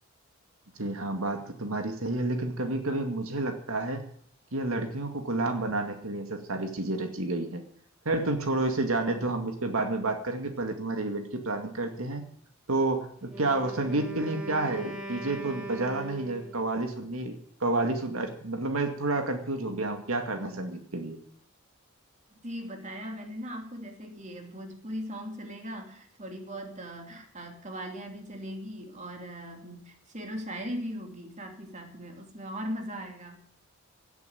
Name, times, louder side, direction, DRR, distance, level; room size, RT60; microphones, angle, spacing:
voice 1, 0.8-4.1 4.5-7.6 8.1-12.2 12.7-21.2, right 2 dB, 80° right, 5 dB, 2.1 m, -30 dB
Wind instrument woodwind instrument, 13.2-16.7, right 2 dB, 5° right, 3.1 m, -40 dB
voice 2, 22.3-33.4, equal, 35° right, 3 dB, 2.9 m, -39 dB
17.5 x 8.4 x 9.3 m, 0.63 s
head